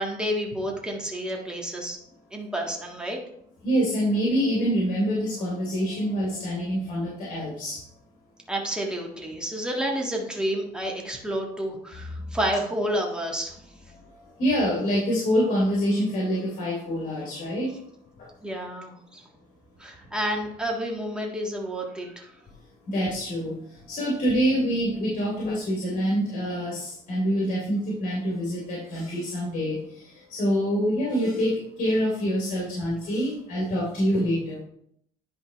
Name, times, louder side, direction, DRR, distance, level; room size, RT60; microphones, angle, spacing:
voice 1, 0.0-2.0 2.3-3.2 8.5-13.5 18.4-19.2 19.8-22.3, equal, 5° right, 0 dB, 1.6 m, -30 dB
voice 2, 3.6-7.8 14.4-17.7 22.9-34.6, equal, 50° left, -5 dB, 2.8 m, -26 dB
10.0 x 5.0 x 3.1 m, 0.72 s
cardioid pair, 110°, 17 cm